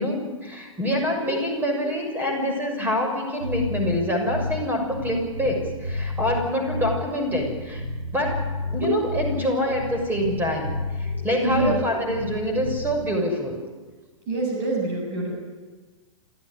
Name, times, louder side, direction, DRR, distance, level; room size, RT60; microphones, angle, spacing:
voice 1, 0.0-7.8 8.1-8.4 8.7-13.6, left 1 dB, 10° right, 3 dB, 6.6 m, -26 dB
Bass guitar, 3.4-4.6 4.9-7.0 7.3-9.4 9.7-11.8 12.1-13.0, left 2 dB, 85° right, 5.2 m, -31 dB
voice 2, 11.0-11.8 13.5-13.6 14.3-15.3, right 2 dB, 40° right, 0 dB, 7.5 m, -27 dB
27.0 x 15.0 x 10.0 m, 1.4 s
figure-of-eight pair, 110°, 17 cm